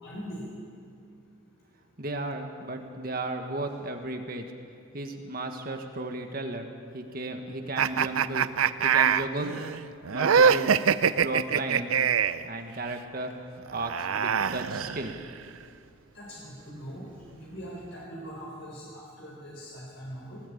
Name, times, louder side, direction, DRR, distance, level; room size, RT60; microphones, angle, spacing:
voice 1, 0.0-0.4 16.1-20.4, equal, 60° left, -4 dB, 4.2 m, -41 dB
voice 2, 2.0-4.4 4.9-8.5 8.8-9.6 10.1-10.8 11.2-11.9 12.4-13.3 13.7-15.1, right 2 dB, 45° right, 4 dB, 1.6 m, -34 dB
sound 1, 7.8-12.5 13.7-15.4, right 7 dB, 80° right, 0.6 m, -24 dB
19.5 x 18.0 x 8.6 m, 2.4 s
head